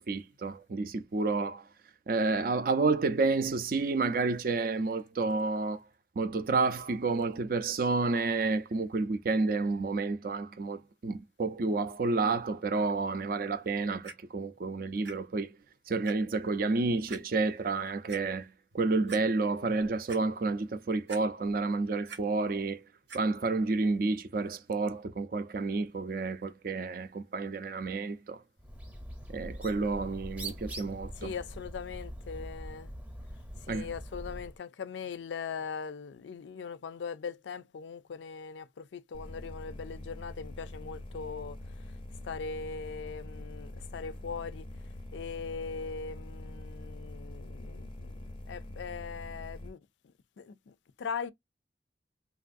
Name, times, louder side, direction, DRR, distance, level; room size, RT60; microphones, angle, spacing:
voice 1, 0.0-1.7 2.1-5.8 6.2-15.6 15.9-22.8 23.1-28.4 29.3-31.3 33.7-33.9, right 3 dB, 50° right, 0.4 m, -30 dB
Clock, 14.0-14.1 15.0-15.1 15.6-15.7 16.0-16.1 17.1-17.2 17.9-18.2 18.7-18.8 19.1-19.2 19.7-20.2 21.1-21.6 21.9-22.2 23.1-23.2 23.9-24.0, right 5 dB, 85° right, 0.9 m, -44 dB
Bird, 28.6-34.6, right 1 dB, 10° right, 0.7 m, -43 dB
voice 2, 31.2-32.9 33.7-41.6 42.2-44.7 45.1-48.1 48.5-49.8 50.4-51.3, left 5 dB, 85° left, 0.4 m, -40 dB
sound 1, 39.1-49.7, left 1 dB, 30° left, 0.5 m, -44 dB
3.1 x 2.4 x 2.5 m
head